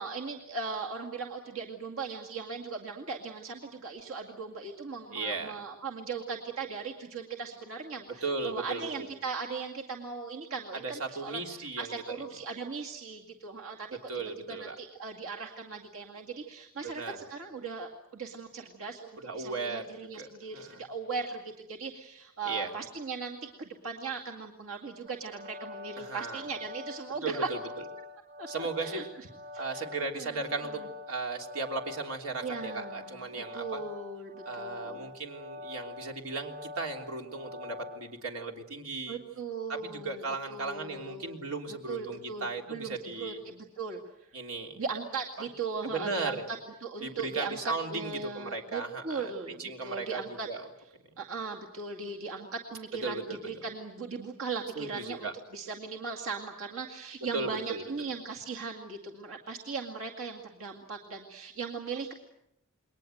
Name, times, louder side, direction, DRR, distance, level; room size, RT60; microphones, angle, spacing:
voice 1, 0.0-13.9 14.5-27.5 28.4-29.3 29.5-29.8 30.1-30.9 32.4-35.1 39.1-40.2 40.5-41.4 41.7-44.3 44.7-47.6 47.9-50.5 51.2-62.1, right 4 dB, 70° right, 0 dB, 2.2 m, -38 dB
voice 2, 5.1-5.5 8.2-9.1 10.8-12.2 14.1-14.8 16.8-17.3 19.2-19.8 20.2-20.8 22.4-22.7 26.0-26.4 27.2-27.6 28.5-29.1 29.6-33.8 34.4-39.2 39.7-43.4 44.3-44.8 45.9-46.4 47.0-49.3 49.6-50.2 50.5-50.7 53.0-53.6 54.7-55.3 57.3-57.8, right 3 dB, 90° right, 2 dB, 3.4 m, -36 dB
sound 1, 25.1-38.0, left 2 dB, 55° right, 4.0 m, -45 dB
29.0 x 22.0 x 7.9 m, 0.81 s
head